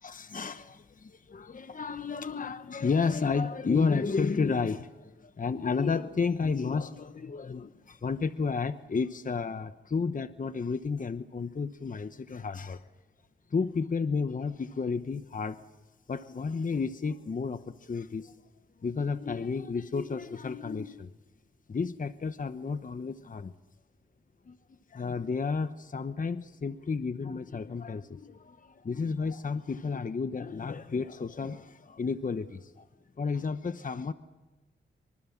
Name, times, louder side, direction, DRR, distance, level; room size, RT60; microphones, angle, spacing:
voice 1, 0.0-12.8 13.5-15.6 16.1-18.3 18.8-21.1 21.7-23.5 24.5-32.9 33.2-34.1, left 5 dB, 45° left, 1.0 m, -32 dB
25.5 x 24.0 x 7.2 m
cardioid pair, 75°, 20 cm